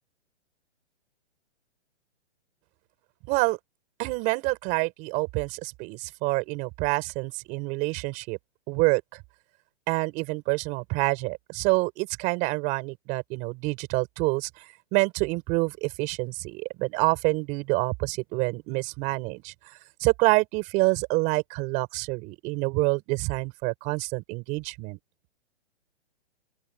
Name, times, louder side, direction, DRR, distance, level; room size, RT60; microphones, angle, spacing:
voice 1, 3.3-3.6 4.0-8.4 8.7-9.2 9.9-14.6 14.9-19.5 20.0-25.0, right 26 dB, 20° right, 6.8 m, -27 dB
open air
hypercardioid pair, 175°, 34 cm